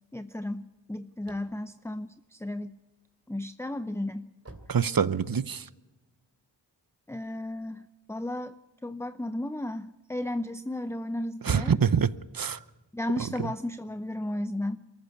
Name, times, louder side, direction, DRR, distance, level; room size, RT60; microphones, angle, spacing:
voice 1, 0.1-2.8 3.3-4.3 7.1-8.5 8.8-11.8 12.9-14.8, left 1 dB, 5° left, 0.7 m, -34 dB
sound 1, 0.7-2.9 3.4-5.6, right 2 dB, 35° right, 3.0 m, -52 dB
voice 2, 4.7-5.7 11.4-12.6 13.4-13.5, right 7 dB, 50° right, 0.9 m, -25 dB
23.0 x 14.5 x 8.5 m
cardioid pair, 40°, 45 cm